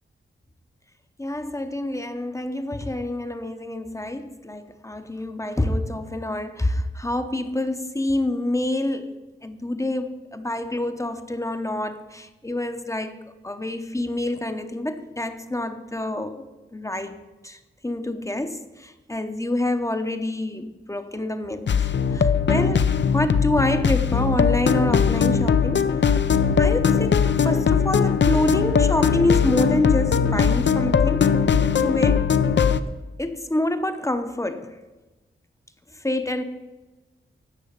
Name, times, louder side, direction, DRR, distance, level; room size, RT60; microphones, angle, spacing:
voice 1, 1.2-13.2 13.4-16.5 16.7-17.2 17.4-17.6 17.8-25.9 26.6-31.3 31.8-32.3 33.2-34.8 36.0-36.4, left 1 dB, 15° left, 8 dB, 0.8 m, -27 dB
sound 1, 21.7-32.8, left 6 dB, 60° left, 0.5 m, -20 dB
10.0 x 6.4 x 8.1 m, 1.1 s
wide cardioid pair, 85°, 21 cm